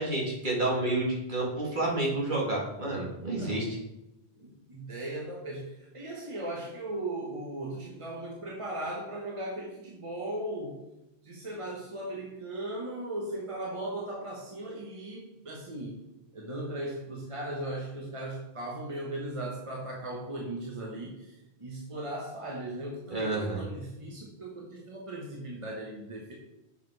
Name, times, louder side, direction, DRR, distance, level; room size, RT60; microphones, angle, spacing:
voice 1, 0.0-3.8 23.1-23.6, right 2 dB, 45° right, -3 dB, 2.2 m, -29 dB
voice 2, 3.3-3.7 4.4-10.8 11.2-16.0 16.3-26.3, right 1 dB, 30° right, -3 dB, 1.1 m, -38 dB
6.7 x 5.1 x 4.7 m, 0.94 s
omnidirectional pair, 1.1 m